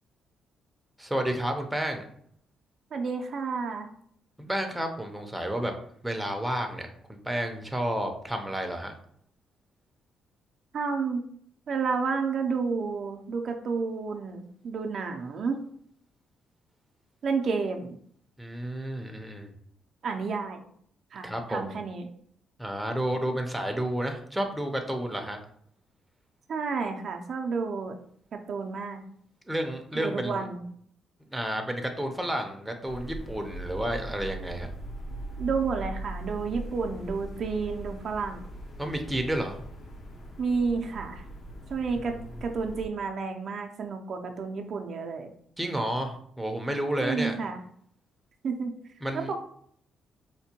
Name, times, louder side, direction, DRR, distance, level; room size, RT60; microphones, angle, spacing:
voice 1, 1.0-2.1 4.4-5.7 6.0-6.9 7.2-8.9 18.4-19.5 21.2-21.7 22.6-25.4 29.5-30.5 31.3-34.7 38.8-39.6 45.6-47.3 49.0-49.3, right 1 dB, 5° right, 4 dB, 0.5 m, -31 dB
voice 2, 2.9-3.9 10.7-11.3 11.7-15.6 17.2-18.0 20.0-20.6 21.1-22.1 26.5-27.9 28.3-29.0 30.0-30.6 35.4-38.5 40.4-41.2 41.7-45.3 47.0-47.6 48.4-48.7 49.1-49.4, right 5 dB, 55° right, 4 dB, 0.4 m, -31 dB
sound 1, 32.8-42.9, right 1 dB, 50° left, 0.6 m, -40 dB
4.3 x 2.1 x 2.8 m, 0.64 s
cardioid pair, 90°, 0 cm